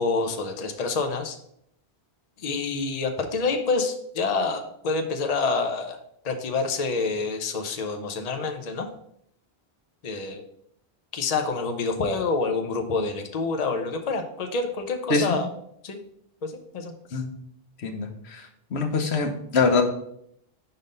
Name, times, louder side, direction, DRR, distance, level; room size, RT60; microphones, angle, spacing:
voice 1, 0.0-1.4 2.4-6.0 6.2-8.9 10.0-10.4 11.1-15.5 15.8-16.0 16.4-17.2, left 4 dB, 45° left, 5 dB, 0.7 m, -27 dB
voice 2, 17.8-18.4 18.7-19.8, left 4 dB, 85° left, 4 dB, 1.2 m, -24 dB
5.2 x 4.0 x 5.2 m, 0.72 s
omnidirectional pair, 1.1 m